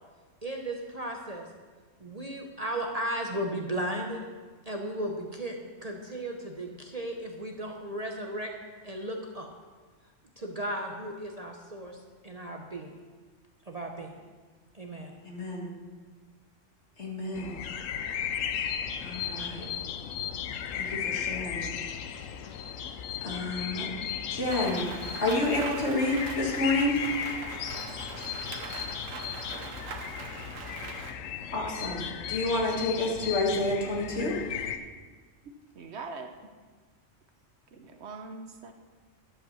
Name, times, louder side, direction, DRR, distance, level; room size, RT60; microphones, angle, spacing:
voice 1, 0.4-1.5 2.0-4.2 4.7-8.5 8.8-9.5 10.4-13.0 13.6-14.2 14.7-15.1, right 1 dB, 35° right, 1 dB, 0.8 m, -35 dB
voice 2, 15.2-15.7 17.0-17.6 19.0-19.7 20.7-21.7 23.2-23.9 24.3-24.9 25.2-27.0 31.5-34.4, left 2 dB, 60° left, -2 dB, 2.1 m, -29 dB
sound 1, 17.3-34.8, left 8 dB, 85° left, 1.0 m, -36 dB
Rain, 24.5-31.1, right 5 dB, 90° right, 1.3 m, -41 dB
voice 3, 35.4-36.3 37.7-38.7, right 4 dB, 60° right, 6 dB, 1.0 m, -42 dB
11.0 x 5.4 x 7.0 m, 1.4 s
omnidirectional pair, 1.3 m